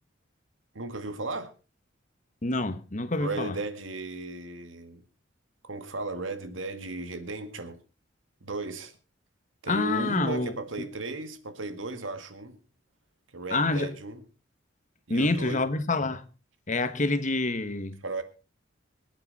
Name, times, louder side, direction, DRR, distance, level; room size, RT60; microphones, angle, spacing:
voice 1, 0.7-1.5 3.1-5.0 5.6-7.8 8.4-8.9 9.6-12.6 13.3-14.2 15.1-15.7 18.0-18.2, right 2 dB, 85° right, 1.9 m, -35 dB
voice 2, 2.4-3.6 9.7-10.5 13.5-13.9 15.1-16.2 16.7-18.0, left 2 dB, 40° left, 1.2 m, -27 dB
25.5 x 8.7 x 4.1 m
head